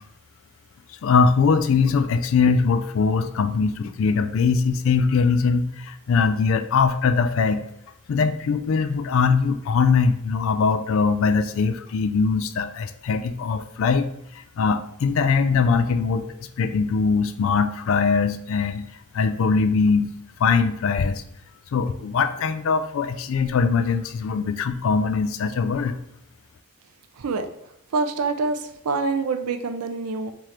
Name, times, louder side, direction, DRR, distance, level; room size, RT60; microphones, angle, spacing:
voice 1, 1.0-7.6 8.1-14.1 14.3-16.3 16.6-18.9 19.1-20.1 20.4-21.2 21.7-26.0, left 5 dB, 65° left, 9 dB, 0.3 m, -21 dB
voice 2, 27.2-27.5 27.9-30.3, right 4 dB, 90° right, 7 dB, 0.5 m, -26 dB
3.7 x 2.9 x 3.2 m, 0.79 s
head